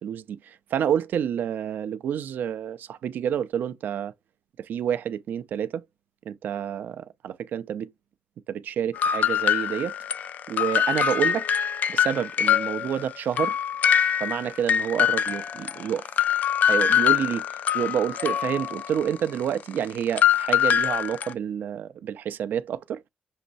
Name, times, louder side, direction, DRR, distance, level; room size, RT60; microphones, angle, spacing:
voice 1, 0.0-4.1 4.6-5.8 6.3-7.9 8.5-9.9 10.5-11.5 11.9-13.6 14.2-16.1 16.6-23.0, right 9 dB, 70° right, 0.5 m, -29 dB
sound 1, 8.9-13.1 13.4-21.3, left 9 dB, 55° left, 0.4 m, -24 dB
6.5 x 3.0 x 2.6 m
wide cardioid pair, 160°, 3 cm